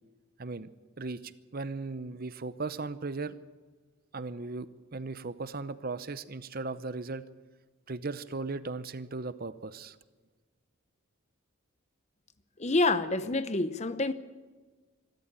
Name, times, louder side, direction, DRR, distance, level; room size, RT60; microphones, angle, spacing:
voice 1, 1.0-3.4 4.1-7.2 7.9-10.0, right 3 dB, 45° right, 0.7 m, -37 dB
voice 2, 12.6-14.1, left 2 dB, 30° left, 0.8 m, -27 dB
24.5 x 13.5 x 8.8 m
head